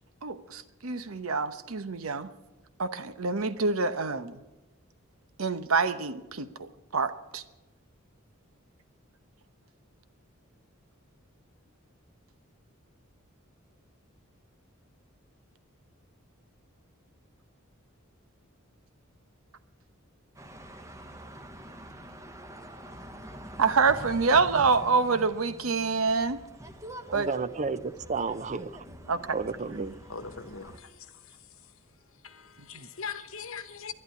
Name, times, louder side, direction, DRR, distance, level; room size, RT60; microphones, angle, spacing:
voice 1, 0.2-2.3 2.8-4.4 5.4-7.4 23.6-26.4 27.1-27.3 29.1-29.3 32.7-32.9, right 4 dB, 85° right, 1.0 m, -27 dB
sound 1, 20.4-30.8, right 1 dB, 15° right, 0.9 m, -45 dB
voice 2, 27.1-28.8 29.3-30.0, right 4 dB, 35° right, 0.6 m, -32 dB
voice 3, 30.1-31.7 32.2-33.9, left 6 dB, 75° left, 1.1 m, -41 dB
12.0 x 11.0 x 9.6 m
head